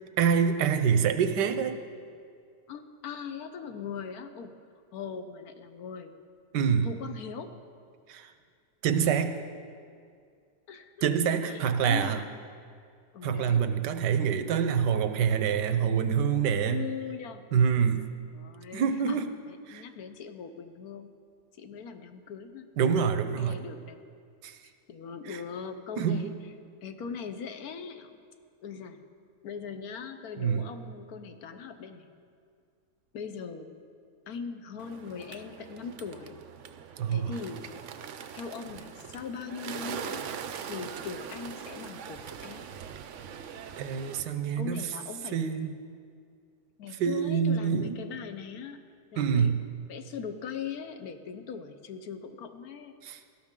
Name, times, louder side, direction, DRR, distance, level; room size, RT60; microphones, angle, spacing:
voice 1, 0.2-1.8 6.5-6.9 8.1-8.3 8.8-9.3 11.0-12.2 13.2-16.8 17.5-18.1 18.7-19.3 19.7-19.8 22.8-23.6 24.4-24.6 25.3-25.4 26.0-26.3 30.4-30.6 37.0-37.3 43.8-44.9 45.3-45.7 47.0-48.0 49.2-49.5 53.0-53.2, right 7 dB, 90° right, 9 dB, 1.4 m, -26 dB
voice 2, 2.7-4.6 4.9-6.2 6.8-7.6 10.7-11.1 11.5-12.3 13.1-13.7 14.1-14.5 16.6-17.5 17.8-17.9 18.3-19.2 19.5-21.1 21.6-22.7 23.4-24.0 24.9-26.3 26.8-28.2 28.6-29.0 29.4-32.1 33.1-33.7 34.3-36.4 37.1-37.7 38.3-40.2 40.6-42.7 44.6-45.4 46.8-48.8 49.1-49.5 49.9-52.9, left 6 dB, 65° left, 8 dB, 1.2 m, -40 dB
Bird, 34.8-44.2, right 7 dB, 60° right, 0.8 m, -42 dB
17.5 x 13.5 x 3.7 m, 2.2 s
omnidirectional pair, 1.8 m